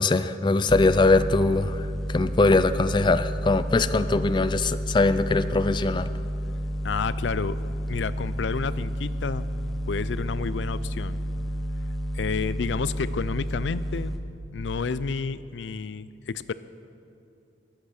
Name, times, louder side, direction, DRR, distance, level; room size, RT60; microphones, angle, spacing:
voice 1, 0.0-6.1, left 3 dB, 25° left, 12 dB, 0.4 m, -22 dB
sound 1, 0.7-14.2, equal, ahead, 0.8 m, -31 dB
voice 2, 6.8-7.6 7.9-9.5 9.9-11.2 12.1-14.1 14.5-16.5, left 5 dB, 85° left, 16 dB, 0.4 m, -30 dB
22.0 x 8.1 x 6.4 m, 2.6 s
head